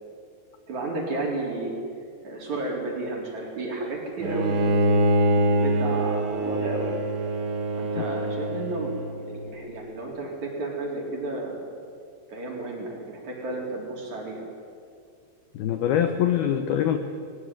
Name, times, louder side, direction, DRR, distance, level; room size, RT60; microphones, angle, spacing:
voice 1, 0.7-1.7 2.2-7.1 7.8-11.6 12.3-14.5, right 2 dB, 40° right, -1 dB, 4.8 m, -32 dB
Bowed string instrument, 4.2-9.4, right 1 dB, 70° right, 4.0 m, -24 dB
voice 2, 15.5-17.0, left 10 dB, 75° left, 7 dB, 2.3 m, -24 dB
21.0 x 19.5 x 9.3 m, 2.2 s
omnidirectional pair, 5.5 m